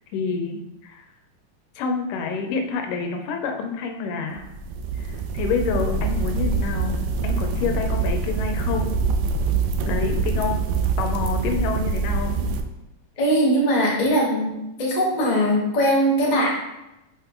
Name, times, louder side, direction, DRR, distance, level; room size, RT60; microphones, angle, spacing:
voice 1, 0.1-1.0 1.8-4.4 5.0-8.9 9.9-10.6 11.0-12.4, left 5 dB, 85° left, 4 dB, 2.4 m, -28 dB
sound 1, 4.4-12.6, right 4 dB, 80° right, 2.1 m, -24 dB
voice 2, 13.2-16.5, equal, 60° left, -4 dB, 0.4 m, -20 dB
6.3 x 5.6 x 3.7 m, 0.92 s
omnidirectional pair, 3.7 m